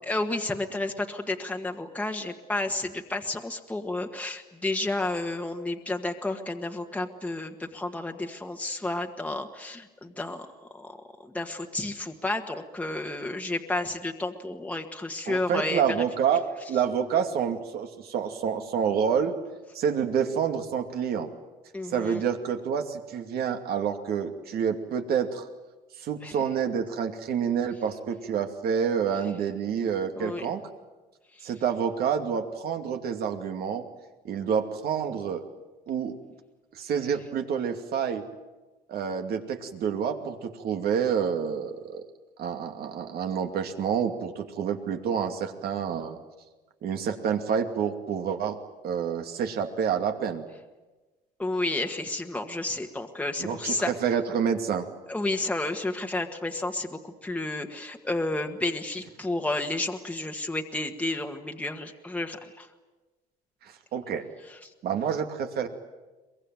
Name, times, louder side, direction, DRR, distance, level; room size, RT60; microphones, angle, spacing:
voice 1, 0.0-10.4 10.7-16.0 21.7-22.2 26.2-26.3 30.1-30.4 31.3-31.5 51.4-53.9 55.1-62.7 64.6-64.7, left 2 dB, 10° left, 3 dB, 1.7 m, -31 dB
voice 2, 15.3-19.3 19.7-21.3 21.9-25.5 26.0-30.6 31.4-33.8 34.2-35.4 35.9-36.1 36.7-38.2 38.9-42.1 42.4-46.2 46.8-48.6 48.8-50.4 53.4-54.9 63.6-64.2 64.8-65.7, right 7 dB, 65° right, 5 dB, 2.5 m, -28 dB
23.5 x 21.5 x 9.2 m, 1.2 s
cardioid pair, 110°, 17 cm